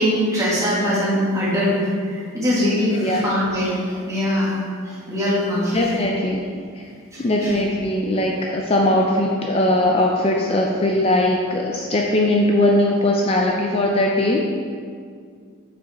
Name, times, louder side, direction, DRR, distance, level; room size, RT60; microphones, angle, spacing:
voice 1, 0.0-1.8 2.1-4.5 4.8-5.8 7.1-7.5, equal, 15° right, -8 dB, 1.9 m, -22 dB
voice 2, 5.7-6.4 6.8-6.9 7.2-14.4, left 1 dB, 30° left, 0 dB, 0.4 m, -20 dB
7.0 x 5.4 x 4.3 m, 2.1 s
head